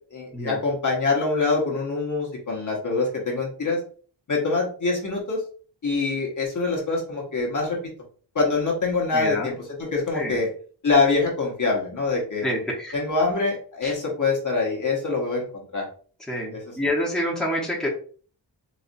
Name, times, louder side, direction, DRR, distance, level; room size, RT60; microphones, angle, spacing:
voice 1, 0.1-3.8 4.3-5.4 5.8-7.8 8.3-10.5 10.8-12.4 12.9-15.9 16.5-16.8, left 3 dB, 45° left, -2 dB, 1.1 m, -24 dB
voice 2, 9.1-9.5 10.1-10.4 12.4-12.9 13.8-13.9 16.3-17.9, left 1 dB, ahead, -5 dB, 1.0 m, -27 dB
4.1 x 2.6 x 2.5 m, 0.43 s
wide cardioid pair, 135°, 44 cm